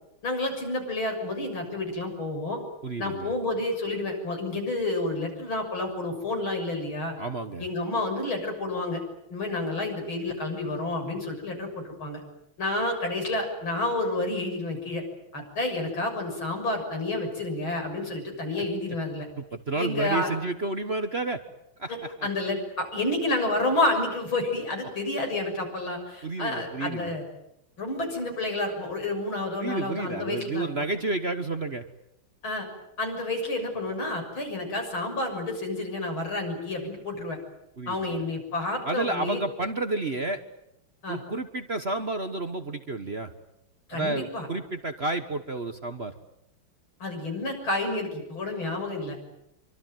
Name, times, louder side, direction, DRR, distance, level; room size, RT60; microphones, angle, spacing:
voice 1, 0.2-2.6 3.0-7.1 7.6-9.0 9.3-12.2 12.6-15.0 15.3-19.3 19.8-20.3 21.9-27.2 27.8-30.7 32.4-32.7 33.0-37.4 37.9-39.4 41.0-41.2 43.9-44.5 47.0-49.2, left 2 dB, 75° left, 3 dB, 7.7 m, -30 dB
voice 2, 2.8-3.3 7.2-7.6 18.6-18.7 19.4-21.4 21.8-22.1 26.2-27.2 29.6-31.8 37.8-38.2 38.8-40.4 41.1-43.3 43.9-46.1, right 2 dB, 35° right, 8 dB, 1.4 m, -31 dB
26.0 x 25.0 x 9.3 m, 0.81 s
omnidirectional pair, 2.2 m